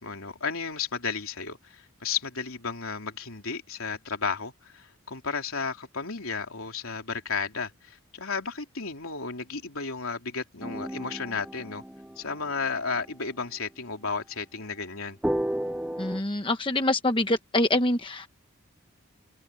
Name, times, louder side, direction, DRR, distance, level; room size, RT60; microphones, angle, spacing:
voice 1, 0.0-11.8 12.2-15.2, left 5 dB, 75° left, 3.3 m, -33 dB
sound 1, 10.6-13.1 15.2-16.2, equal, 5° right, 0.4 m, -32 dB
voice 2, 16.0-18.3, left 1 dB, 25° left, 1.2 m, -25 dB
head